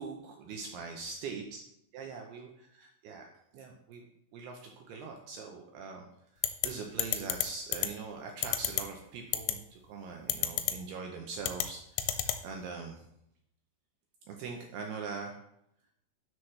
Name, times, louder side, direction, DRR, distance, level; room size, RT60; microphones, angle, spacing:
voice 1, 0.0-1.6 1.9-3.3 3.5-4.0 4.3-6.1 6.4-13.0 14.3-15.4, right 4 dB, 80° right, 2 dB, 2.4 m, -42 dB
sound 1, 6.4-6.7 7.0-7.4 7.7-7.9 8.4-8.8 9.3-9.5 10.3-10.7 11.4-11.7 12.0-12.4, left 12 dB, 85° left, 2.9 m, -29 dB
11.5 x 6.2 x 3.2 m, 0.77 s
omnidirectional pair, 5.4 m